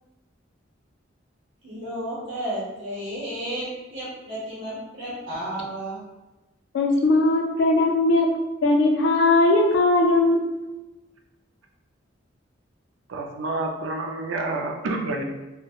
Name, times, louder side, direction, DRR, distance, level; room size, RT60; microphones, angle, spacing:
voice 1, 1.6-6.0, right 1 dB, 75° right, -9 dB, 0.8 m, -32 dB
voice 2, 6.7-8.3 8.6-10.8, left 2 dB, 65° left, 1 dB, 0.4 m, -19 dB
voice 3, 13.1-15.2, right 2 dB, 90° right, 1 dB, 0.4 m, -28 dB
2.8 x 2.0 x 2.3 m, 1.0 s
head